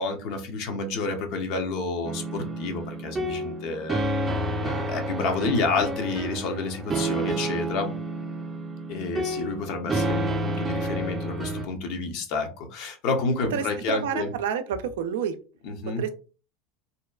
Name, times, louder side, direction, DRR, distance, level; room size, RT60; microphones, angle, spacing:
voice 1, 0.0-4.0 4.6-7.9 8.9-14.3 15.6-16.0, left 3 dB, 60° left, 5 dB, 0.6 m, -29 dB
sound 1, 2.0-11.6, right 1 dB, 20° right, 0.5 m, -30 dB
voice 2, 13.5-15.3 16.0-16.1, right 7 dB, 80° right, 9 dB, 0.3 m, -29 dB
2.7 x 2.2 x 2.3 m, 0.36 s
hypercardioid pair, 100°, 0 cm